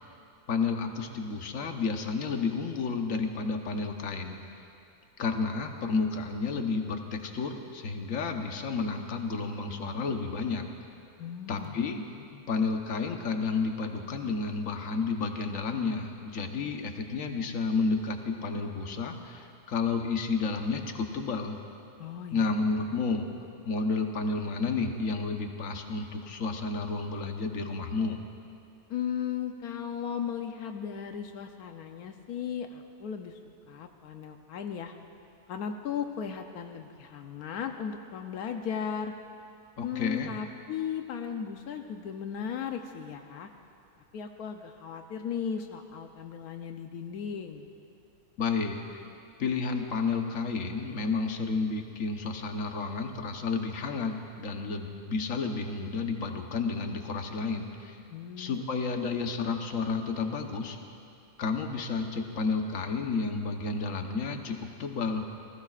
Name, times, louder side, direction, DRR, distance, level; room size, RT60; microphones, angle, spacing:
voice 1, 0.5-4.4 5.2-10.7 11.5-12.0 12.5-21.6 22.3-23.2 23.6-28.2 39.8-40.3 48.4-49.0 49.4-58.0 58.4-60.8 61.4-65.2, left 4 dB, 60° left, 4 dB, 1.4 m, -31 dB
voice 2, 11.2-11.8 12.3-12.4 22.0-22.5 28.9-33.4 33.7-34.9 35.5-39.1 39.8-43.5 44.1-47.6 58.1-58.7, left 7 dB, 85° left, 5 dB, 1.3 m, -36 dB
29.0 x 19.5 x 2.5 m, 2.6 s
omnidirectional pair, 1.6 m